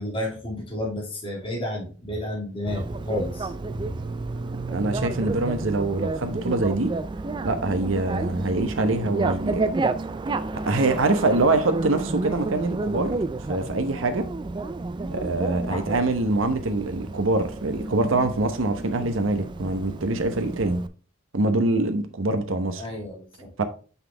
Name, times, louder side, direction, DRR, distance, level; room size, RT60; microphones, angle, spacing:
voice 1, 0.0-3.5 3.8-3.9 15.7-15.9 22.8-23.5, left 1 dB, 25° left, 2.6 m, -31 dB
Bicycle, 2.7-20.9, right 3 dB, 25° right, 0.3 m, -31 dB
voice 2, 4.7-6.9 7.4-9.6 10.7-13.2 13.5-14.3 15.1-20.8 21.3-22.8 23.6-23.7, right 2 dB, 80° right, 0.9 m, -24 dB
6.0 x 5.6 x 3.3 m
head